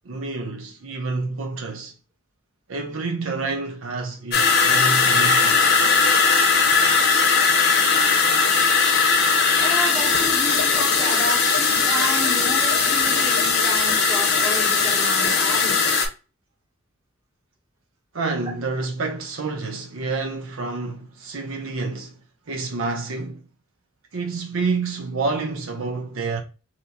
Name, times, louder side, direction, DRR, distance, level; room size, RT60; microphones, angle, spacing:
voice 1, 0.0-1.9 2.7-5.7 18.1-22.1 22.5-23.4 24.1-26.4, right 3 dB, 70° right, 0.6 m, -28 dB
sound 1, 4.3-16.1, left 5 dB, 45° left, 0.7 m, -19 dB
voice 2, 9.6-15.8, equal, 10° right, 1.0 m, -31 dB
2.8 x 2.8 x 3.4 m
head